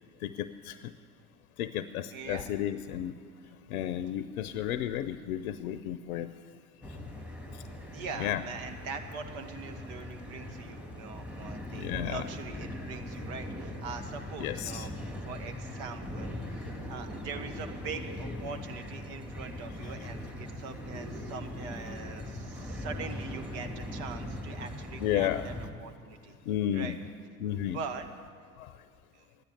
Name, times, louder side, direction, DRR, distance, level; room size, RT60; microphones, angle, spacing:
voice 1, 0.2-0.8 1.6-3.1 3.7-6.3 8.2-8.4 11.7-12.3 14.4-14.9 19.8-19.9 25.0-25.4 26.5-27.0 27.4-27.8 28.6-28.8, left 11 dB, 75° left, 13 dB, 0.7 m, -32 dB
voice 2, 2.1-2.4 3.7-3.9 7.9-25.5 25.8-26.4 26.7-26.9 27.7-28.1 29.1-29.3, right 5 dB, 60° right, 6 dB, 1.7 m, -42 dB
sound 1, 6.8-25.7, left 1 dB, 5° right, 2.3 m, -40 dB
13.5 x 10.0 x 9.7 m, 2.1 s
hypercardioid pair, 75°, 44 cm